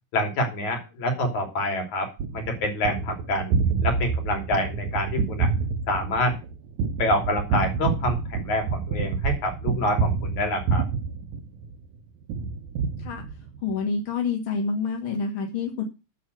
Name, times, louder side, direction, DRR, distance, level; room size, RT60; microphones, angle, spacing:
voice 1, 0.1-5.5 5.9-6.3 7.0-10.8, left 1 dB, 55° left, 4 dB, 4.4 m, -27 dB
Gunshot gunfire, 2.2-11.9 12.3-13.7, right 5 dB, 70° right, 2.0 m, -27 dB
voice 2, 13.6-15.8, left 5 dB, 40° left, 1 dB, 2.7 m, -27 dB
9.3 x 7.7 x 7.9 m, 0.29 s
omnidirectional pair, 4.0 m